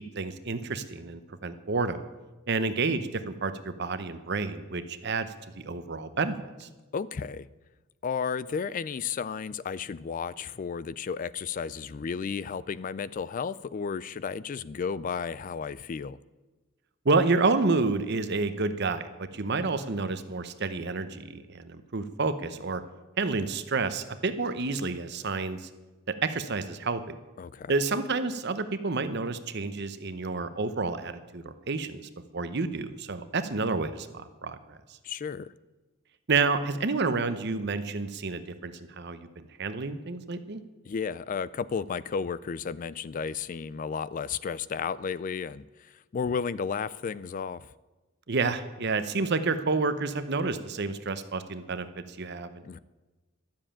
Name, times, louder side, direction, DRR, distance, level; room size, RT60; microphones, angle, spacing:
voice 1, 0.1-2.0 2.5-5.3 5.5-6.7 17.0-22.8 23.2-25.7 26.2-27.1 27.7-34.8 36.3-40.6 48.3-52.5, right 3 dB, 55° right, 0.8 m, -29 dB
voice 2, 6.9-7.5 8.0-16.2 27.4-27.7 35.0-35.5 40.9-47.7 52.6-52.8, left 6 dB, 40° left, 0.3 m, -33 dB
12.5 x 7.4 x 8.7 m
head